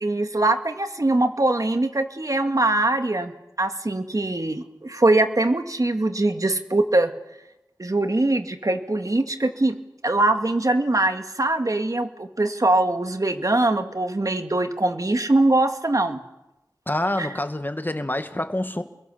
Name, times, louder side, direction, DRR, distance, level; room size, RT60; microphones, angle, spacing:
voice 1, 0.0-3.3 3.6-7.1 7.8-9.8 10.0-16.2 17.2-17.3, right 2 dB, 55° right, 2.3 m, -22 dB
voice 2, 16.9-18.8, left 1 dB, 25° left, 2.2 m, -26 dB
29.5 x 22.0 x 7.0 m
wide cardioid pair, 40°, 7 cm